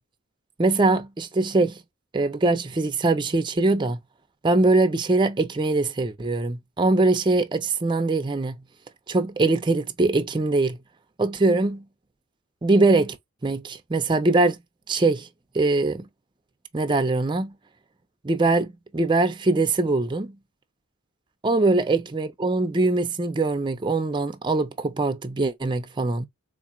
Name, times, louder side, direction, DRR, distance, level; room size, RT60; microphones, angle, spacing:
voice 1, 0.6-1.8 2.1-4.0 4.4-8.6 9.1-10.8 11.2-11.8 12.6-13.2 13.4-14.6 14.9-15.3 15.5-16.0 16.7-17.5 18.2-20.4 21.4-26.3, right 2 dB, 20° right, 0.5 m, -22 dB
3.9 x 2.8 x 2.3 m
head